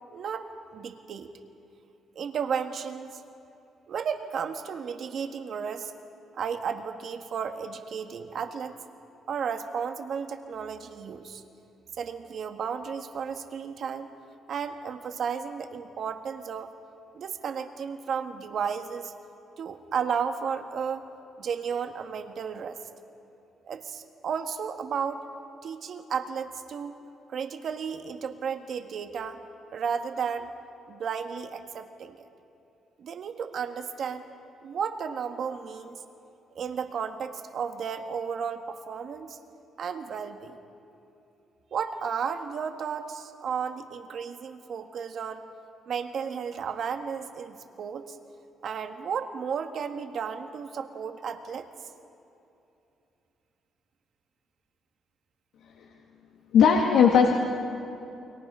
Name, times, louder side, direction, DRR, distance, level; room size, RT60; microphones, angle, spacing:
voice 1, 0.1-1.3 2.2-3.2 3.9-5.9 6.3-8.7 9.3-11.4 12.0-14.1 14.5-16.7 17.1-19.1 19.6-21.1 21.4-22.8 23.6-25.2 25.6-27.0 27.3-29.4 29.7-30.5 30.9-32.3 33.0-34.2 34.6-36.0 36.6-39.4 39.8-40.6 41.7-45.4 45.9-48.2 48.6-51.7, right 6 dB, 60° right, 7 dB, 1.6 m, -33 dB
voice 2, 56.5-57.3, left 7 dB, 85° left, 0 dB, 1.9 m, -17 dB
29.5 x 23.0 x 5.6 m, 2.8 s
cardioid pair, 90°, 0 cm